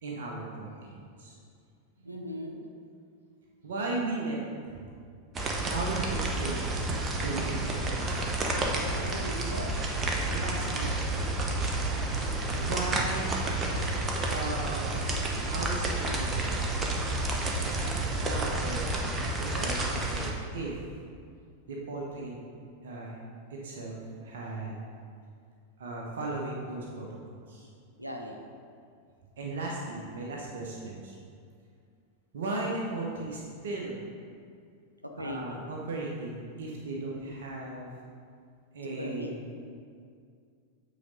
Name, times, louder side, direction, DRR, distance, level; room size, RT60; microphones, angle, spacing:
voice 1, 0.0-1.3 3.6-4.4 4.6-4.8 5.7-6.9 7.2-8.0 10.2-11.0 12.5-13.4 14.3-14.9 15.5-16.8 18.1-19.0 19.4-20.8 21.7-22.4 22.8-23.2 23.5-24.8 25.8-27.2 27.5-27.7 29.4-31.1 32.3-33.9 35.2-37.9 38.7-39.4, right 2 dB, 60° right, -2 dB, 1.1 m, -36 dB
voice 2, 2.0-2.6 9.0-9.7 10.2-10.3 28.0-28.4 35.0-35.6 39.0-39.3, equal, 90° right, 2 dB, 0.8 m, -39 dB
sound 1, 5.3-20.3, right 2 dB, 20° right, 1.0 m, -30 dB
8.3 x 4.2 x 5.2 m, 2.3 s
figure-of-eight pair, 90°, 0 cm